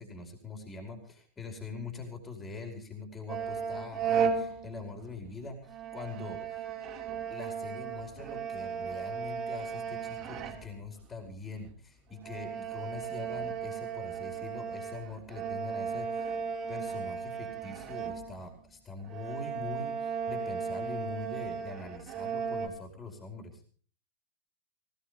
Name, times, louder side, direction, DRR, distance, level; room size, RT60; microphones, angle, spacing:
voice 1, 0.0-6.7 7.3-16.4 16.7-23.6, left 4 dB, 15° left, 5 dB, 5.0 m, -43 dB
sound 1, 3.3-5.3 5.6-11.0 11.6-11.7 12.2-18.7 19.0-22.7, right 6 dB, 35° right, 4.4 m, -35 dB
19.0 x 18.5 x 3.4 m, 0.42 s
figure-of-eight pair, 90°, 0 cm